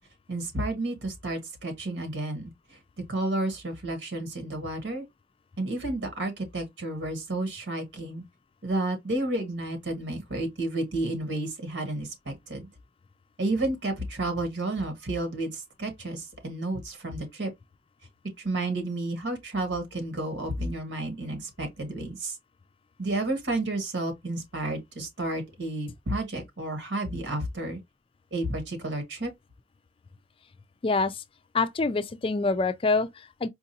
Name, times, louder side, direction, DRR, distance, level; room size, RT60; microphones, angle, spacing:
voice 1, 0.3-2.8 3.1-5.0 5.6-8.2 8.6-12.7 13.4-17.5 18.4-22.4 23.0-27.8 28.3-29.3, right 2 dB, 80° right, 1.5 m, -31 dB
voice 2, 30.8-31.2 31.5-33.5, left 3 dB, 30° left, 0.3 m, -26 dB
4.6 x 2.5 x 2.8 m
head